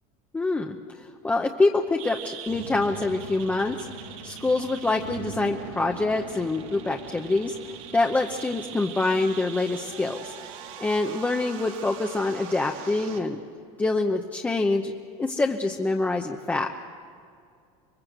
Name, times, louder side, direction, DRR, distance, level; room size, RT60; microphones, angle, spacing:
voice 1, 0.3-3.7 4.2-10.3 10.8-13.4 13.8-14.9 15.2-16.7, left 2 dB, 10° left, 2 dB, 0.8 m, -25 dB
sound 1, 2.0-13.2, right 7 dB, 85° right, 2.9 m, -40 dB
26.5 x 22.0 x 8.0 m, 2.3 s
cardioid pair, 160°, 17 cm